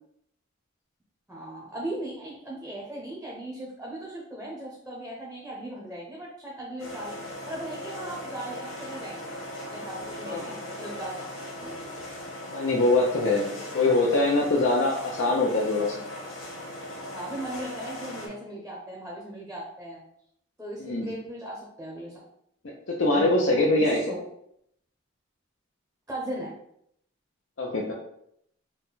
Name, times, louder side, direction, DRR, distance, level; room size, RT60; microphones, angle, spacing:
voice 1, 1.3-7.2 7.4-9.4 9.7-11.9 17.1-20.0 20.6-22.3 23.1-24.2 26.1-26.5, right 1 dB, 5° right, -3 dB, 0.6 m, -38 dB
sound 1, 6.8-18.3, left 1 dB, 80° left, 1.4 m, -39 dB
voice 2, 10.3-10.6 12.5-16.0 20.8-21.1 22.9-24.1 27.6-27.9, left 2 dB, 65° left, -2 dB, 0.6 m, -23 dB
4.0 x 2.2 x 4.0 m, 0.72 s
head